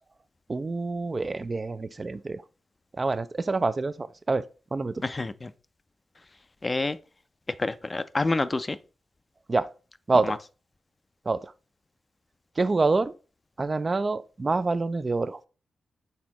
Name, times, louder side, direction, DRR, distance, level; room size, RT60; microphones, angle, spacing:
voice 1, 0.5-2.4 3.0-4.4 4.7-5.0 9.5-9.7 10.1-10.4 11.3-11.5 12.6-13.1 13.6-15.4, right 3 dB, 40° right, 0.3 m, -26 dB
voice 2, 5.0-5.5 6.6-7.0 7.6-8.8 10.2-10.4, left 2 dB, 35° left, 0.4 m, -28 dB
4.3 x 3.5 x 2.9 m
supercardioid pair, 45°, 0 cm